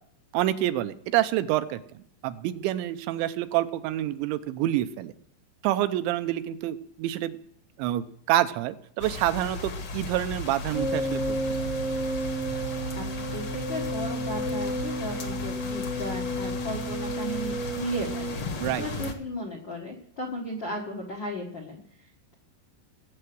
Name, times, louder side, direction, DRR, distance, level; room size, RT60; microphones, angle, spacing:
voice 1, 0.3-5.1 5.6-7.4 7.8-11.7 18.6-18.9, right 13 dB, 85° right, 11 dB, 3.0 m, -27 dB
sound 1, 9.0-19.1, left 3 dB, 60° left, 1.4 m, -36 dB
sound 2, 10.7-18.4, right 1 dB, 5° right, 0.6 m, -31 dB
voice 2, 12.9-22.3, left 1 dB, 80° left, 0 dB, 1.0 m, -36 dB
18.5 x 7.9 x 6.2 m, 0.65 s
omnidirectional pair, 5.1 m